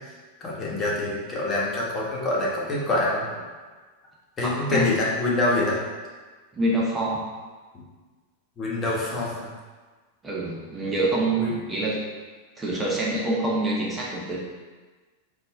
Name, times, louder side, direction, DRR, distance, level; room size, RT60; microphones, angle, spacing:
voice 1, 0.4-3.4 4.4-5.8 8.6-9.5 11.4-11.6, left 2 dB, 30° left, -5 dB, 1.4 m, -25 dB
voice 2, 4.4-5.0 6.5-7.3 10.2-12.0 12.6-14.4, right 2 dB, 15° right, -4 dB, 0.8 m, -26 dB
4.4 x 2.6 x 4.3 m, 1.4 s
hypercardioid pair, 105°, 0 cm